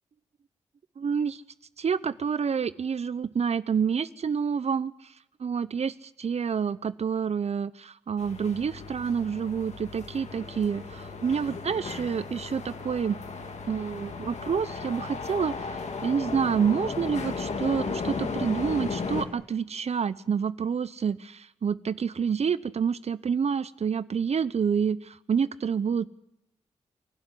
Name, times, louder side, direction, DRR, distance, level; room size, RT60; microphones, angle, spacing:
voice 1, 1.0-1.4 1.8-5.1 5.4-13.2 13.7-26.1, right 6 dB, 55° right, 17 dB, 0.8 m, -28 dB
sound 1, 8.2-19.2, left 4 dB, 65° left, 3.0 m, -35 dB
27.5 x 11.5 x 9.9 m, 0.84 s
supercardioid pair, 40°, 13 cm